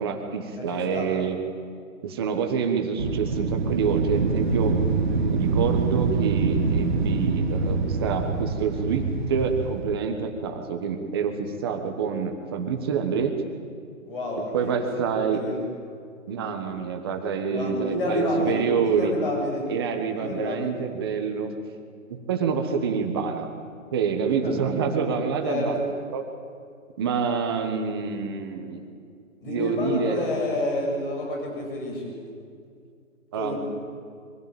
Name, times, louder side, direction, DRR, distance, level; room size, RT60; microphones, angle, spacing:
voice 1, 0.0-1.4 2.0-4.7 5.2-13.3 14.5-15.4 16.3-19.1 19.7-21.5 22.1-23.5 23.9-25.8 26.1-26.2 27.0-28.9 29.5-30.3 33.3-33.6, right 6 dB, 20° right, 4 dB, 1.3 m, -27 dB
voice 2, 0.6-1.1 14.1-15.6 17.5-19.6 20.2-20.7 24.4-24.5 25.4-25.8 29.4-32.1 33.3-33.6, left 1 dB, 40° left, 0 dB, 7.5 m, -29 dB
Wind, 3.0-9.9, right 4 dB, 35° right, 1.7 m, -25 dB
23.5 x 16.0 x 9.1 m, 2.3 s
hypercardioid pair, 170°, 41 cm